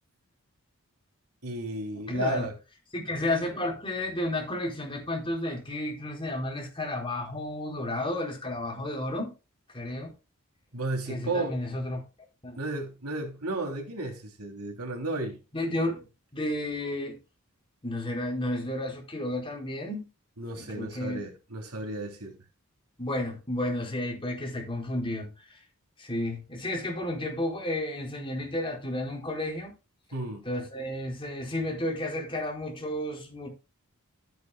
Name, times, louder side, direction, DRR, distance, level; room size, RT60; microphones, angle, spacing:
voice 1, 1.4-2.5 10.7-11.6 12.6-15.4 20.4-22.4 30.1-30.4, right 2 dB, 85° right, 3.2 m, -33 dB
voice 2, 2.1-2.5 2.9-9.3 9.7-10.1 11.1-12.0 12.4-12.6 15.5-16.0 16.3-17.2 17.8-20.1 20.6-21.2 23.0-25.3 26.0-29.7 30.4-33.5, left 1 dB, 25° left, 4.8 m, -32 dB
15.0 x 9.2 x 2.3 m
head